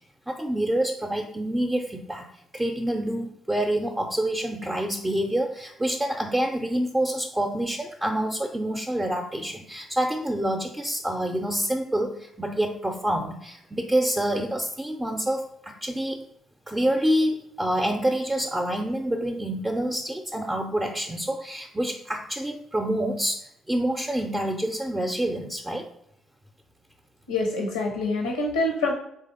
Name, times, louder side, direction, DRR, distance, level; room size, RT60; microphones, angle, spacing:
voice 1, 0.3-2.2 2.5-16.3 16.7-25.9, right 1 dB, 15° right, 1 dB, 0.5 m, -27 dB
voice 2, 27.3-28.9, left 2 dB, 80° left, 1 dB, 0.6 m, -26 dB
4.0 x 3.3 x 3.8 m, 0.76 s
figure-of-eight pair, 45°, 0 cm